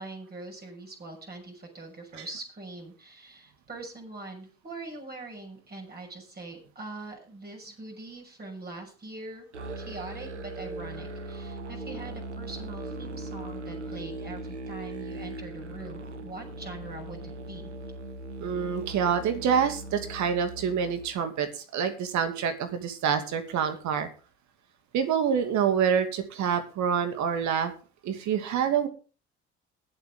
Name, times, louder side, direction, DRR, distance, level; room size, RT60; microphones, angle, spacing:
voice 1, 0.0-9.4 9.8-17.7, right 2 dB, 30° right, 1 dB, 6.2 m, -42 dB
Musical instrument, 9.5-21.1, right 2 dB, 90° right, 1.0 m, -39 dB
voice 2, 18.4-24.1 24.9-27.7 28.0-28.9, right 7 dB, 55° right, 8 dB, 2.6 m, -27 dB
21.0 x 7.7 x 3.8 m, 0.35 s
figure-of-eight pair, 50°, 34 cm